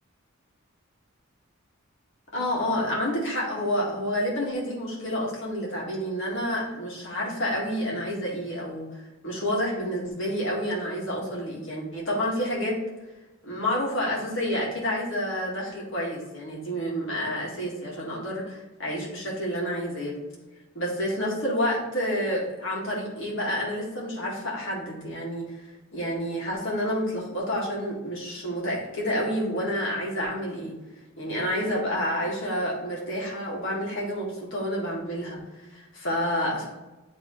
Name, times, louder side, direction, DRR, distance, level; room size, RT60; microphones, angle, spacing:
voice 1, 2.3-12.8 13.4-20.2 20.7-30.8 31.2-36.7, equal, 60° left, -3 dB, 2.0 m, -29 dB
9.2 x 3.5 x 3.2 m, 1.1 s
head